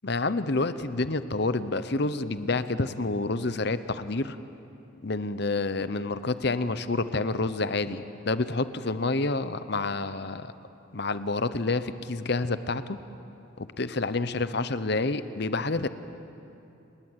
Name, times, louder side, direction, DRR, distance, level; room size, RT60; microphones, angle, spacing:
voice 1, 0.0-4.4 5.0-10.5 10.9-13.0 13.6-15.9, left 3 dB, 50° left, 12 dB, 0.9 m, -28 dB
29.0 x 20.0 x 8.2 m, 2.8 s
head